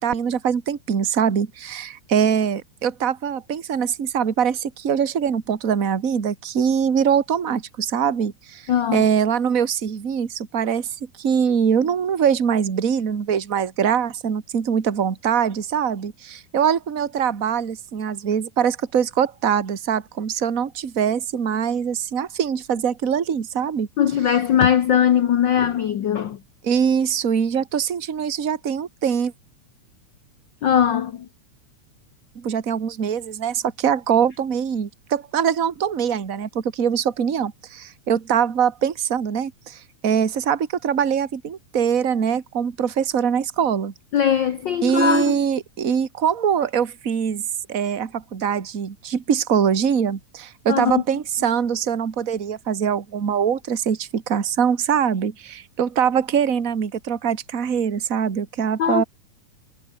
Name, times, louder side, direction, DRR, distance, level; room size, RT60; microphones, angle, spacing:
voice 1, 0.0-10.9 11.2-23.9 26.6-29.3 32.4-43.9 44.8-47.4 47.7-59.0, right 7 dB, 35° right, 1.7 m, -23 dB
voice 2, 8.7-9.1 24.0-26.4 30.6-31.3 44.1-45.4 50.7-51.0 58.8-59.0, left 9 dB, 75° left, 1.0 m, -20 dB
omnidirectional pair, 3.4 m